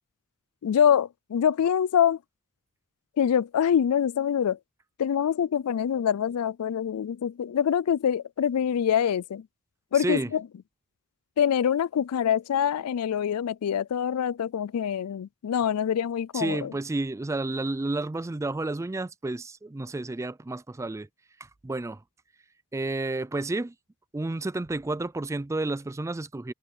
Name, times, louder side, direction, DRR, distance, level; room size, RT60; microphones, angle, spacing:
voice 1, 0.6-2.2 3.2-4.6 5.0-9.5 9.9-10.4 11.4-16.7, left 8 dB, 75° left, 0.4 m, -25 dB
voice 2, 9.9-10.3 16.3-21.1 21.6-22.0 22.7-23.7 24.1-26.5, right 2 dB, 15° right, 0.3 m, -31 dB
head